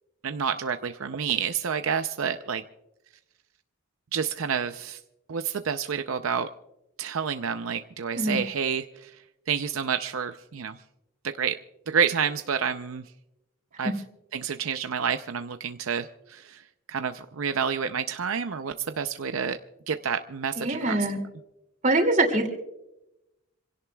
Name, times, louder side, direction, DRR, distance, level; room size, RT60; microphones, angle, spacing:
voice 1, 0.2-2.6 4.1-5.0 5.3-6.5 7.0-9.1 9.5-10.8 11.4-11.6 11.9-13.0 13.8-13.9 14.3-16.6 16.9-19.6 19.9-21.0, right 7 dB, 80° right, 8 dB, 0.6 m, -29 dB
voice 2, 20.6-21.2 21.8-22.5, right 2 dB, 35° right, 4 dB, 2.6 m, -23 dB
27.0 x 17.0 x 2.3 m, 0.92 s
head